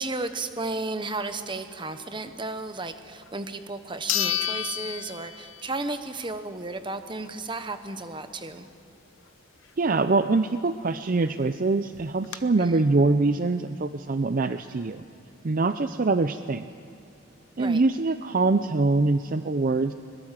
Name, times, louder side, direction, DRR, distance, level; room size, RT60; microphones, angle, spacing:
voice 1, 0.0-8.6 12.6-12.9 17.6-17.8, right 2 dB, 25° right, 9 dB, 1.0 m, -33 dB
sound 1, 3.3-3.4 4.1-5.8 6.2-6.3 10.9-11.0 11.3-11.4 11.9-12.4, left 11 dB, 70° left, 1.0 m, -30 dB
voice 2, 9.8-15.0 15.4-16.7 17.6-19.9, right 3 dB, 40° right, 10 dB, 0.5 m, -24 dB
22.0 x 21.5 x 7.5 m, 2.6 s
head